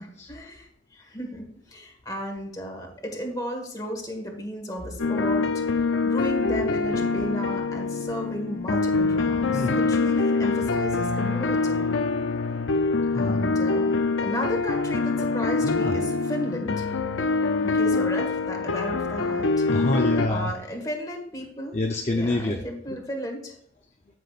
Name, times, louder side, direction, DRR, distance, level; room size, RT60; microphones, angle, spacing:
voice 1, 0.3-5.4 6.0-12.0 13.1-16.8 17.6-19.6 20.3-21.8 22.1-23.6, equal, 20° left, 2 dB, 1.7 m, -34 dB
sound 1, 5.0-20.3, left 4 dB, 75° left, 0.5 m, -25 dB
voice 2, 13.1-13.6 15.6-16.0 19.6-20.5 21.7-22.6 22.9-23.0, left 2 dB, 35° left, 1 dB, 0.7 m, -27 dB
13.5 x 6.2 x 2.5 m, 0.69 s
head